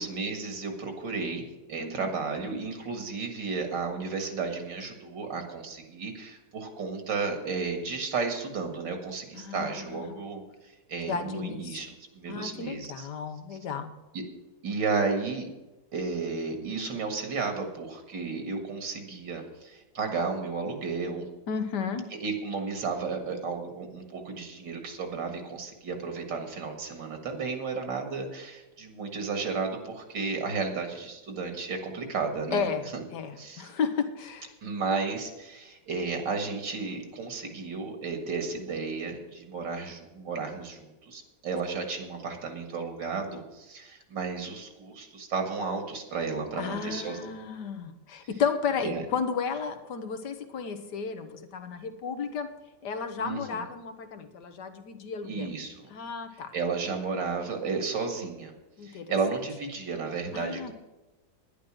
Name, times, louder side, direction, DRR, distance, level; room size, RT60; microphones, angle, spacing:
voice 1, 0.0-10.4 10.9-13.1 14.1-14.2 14.6-15.5 15.9-21.2 22.2-32.7 32.9-33.0 33.4-33.7 34.6-47.2 48.8-49.0 53.2-53.6 55.2-55.7 56.5-58.5 58.8-60.7, right 4 dB, 75° right, 5 dB, 2.5 m, -33 dB
voice 2, 1.8-2.1 9.3-10.2 11.1-11.8 12.3-13.9 21.5-22.0 32.5-32.8 33.1-34.5 46.5-52.5 52.8-55.5 55.9-56.5 58.8-59.1 60.3-60.7, left 6 dB, 65° left, 9 dB, 1.7 m, -33 dB
10.5 x 10.5 x 6.2 m, 1.1 s
omnidirectional pair, 2.0 m